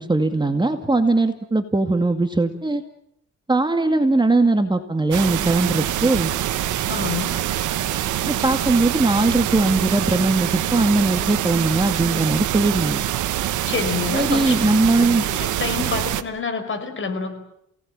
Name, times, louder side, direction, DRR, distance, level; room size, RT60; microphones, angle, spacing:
voice 1, 0.0-2.8 3.5-6.3 8.3-13.0 14.1-15.3, right 2 dB, 15° right, 7 dB, 2.1 m, -20 dB
sound 1, 5.1-16.2, right 12 dB, 80° right, 1.4 m, -25 dB
voice 2, 6.9-7.3 13.7-14.6 15.2-17.3, left 5 dB, 40° left, 7 dB, 5.6 m, -27 dB
28.5 x 18.5 x 8.9 m, 0.78 s
cardioid pair, 90°, 30 cm